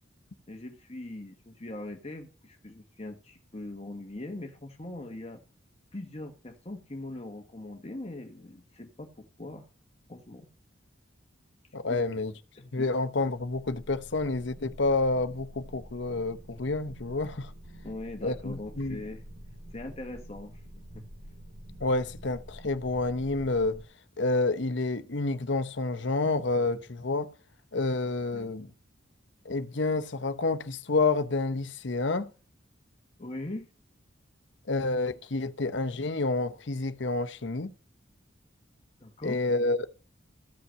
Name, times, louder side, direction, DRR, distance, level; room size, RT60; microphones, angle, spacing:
voice 1, 0.5-5.4 5.9-9.7 10.1-10.5 11.9-12.2 12.6-12.9 17.8-19.2 19.7-20.6 20.9-21.1 28.3-28.5 33.2-33.7 39.0-39.4, left 2 dB, 30° left, 1.2 m, -41 dB
voice 2, 11.7-12.3 12.7-17.5 18.2-19.0 21.8-23.8 24.2-27.3 27.7-28.7 29.4-32.3 34.7-37.7 39.2-39.8, left 3 dB, 65° left, 0.9 m, -29 dB
sound 1, 13.0-23.8, equal, 90° right, 2.9 m, -48 dB
14.0 x 5.6 x 7.4 m
head